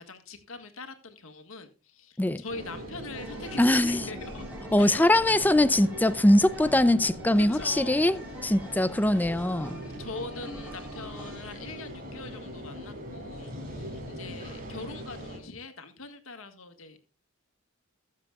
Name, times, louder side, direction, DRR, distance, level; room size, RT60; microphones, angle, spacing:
voice 1, 0.0-4.4 4.7-5.1 7.4-8.0 9.8-17.0, left 3 dB, 80° left, 1.8 m, -42 dB
sound 1, 2.5-15.4, equal, 45° right, 4.6 m, -41 dB
sound 2, 3.1-11.3, right 1 dB, 5° right, 3.7 m, -44 dB
voice 2, 3.6-4.0 4.7-9.8, left 1 dB, 10° left, 0.4 m, -22 dB
22.0 x 7.5 x 2.4 m
head